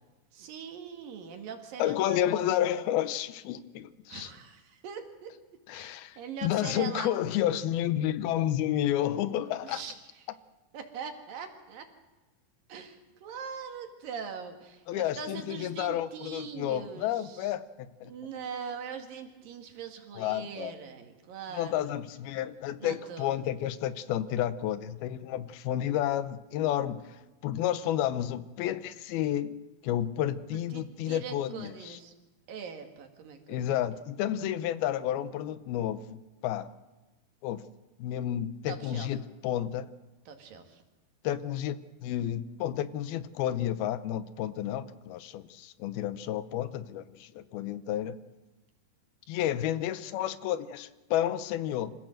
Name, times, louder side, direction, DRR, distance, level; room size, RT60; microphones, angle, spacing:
voice 1, 0.3-2.2 4.1-5.3 5.7-7.1 9.6-10.0 10.7-11.9 12.7-17.5 18.0-22.0 22.8-23.3 30.5-32.1 32.5-33.9 38.7-39.1 40.3-40.8, right 6 dB, 70° right, 5 dB, 3.6 m, -42 dB
voice 2, 1.8-4.3 5.7-9.8 14.9-18.1 20.1-20.7 21.5-27.2 27.4-32.0 33.5-36.7 37.4-37.6 38.0-39.9 41.2-48.2 49.3-51.9, left 11 dB, 85° left, 14 dB, 2.8 m, -31 dB
26.0 x 15.5 x 7.7 m, 1.2 s
omnidirectional pair, 4.3 m